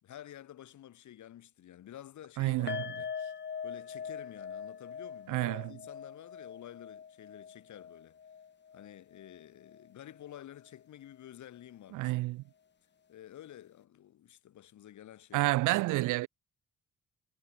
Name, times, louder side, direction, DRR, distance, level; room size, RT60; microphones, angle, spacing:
voice 1, 0.0-3.1 3.6-8.2 8.7-12.3 13.1-15.6, left 11 dB, 70° left, 3.9 m, -51 dB
voice 2, 2.4-2.8 5.3-5.7 11.9-12.4 15.3-16.3, right 19 dB, 90° right, 0.6 m, -29 dB
sound 1, 2.7-9.9 10.1-10.3 10.7-10.8, left 7 dB, 35° left, 1.2 m, -43 dB
cardioid pair, 90°, 30 cm